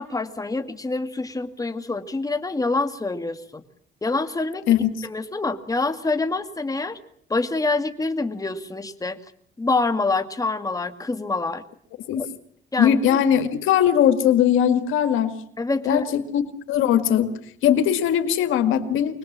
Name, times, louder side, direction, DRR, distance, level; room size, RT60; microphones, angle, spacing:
voice 1, 0.0-3.6 4.0-4.6 5.0-7.0 7.3-9.2 9.6-11.6 12.2-12.3 12.7-13.2 15.6-16.0, left 3 dB, 15° left, 8 dB, 2.0 m, -26 dB
voice 2, 12.8-15.3 15.9-16.4 16.7-17.3 17.6-19.2, left 9 dB, 90° left, 9 dB, 2.0 m, -20 dB
25.0 x 20.0 x 7.4 m, 0.62 s
cardioid pair, 90°, 20 cm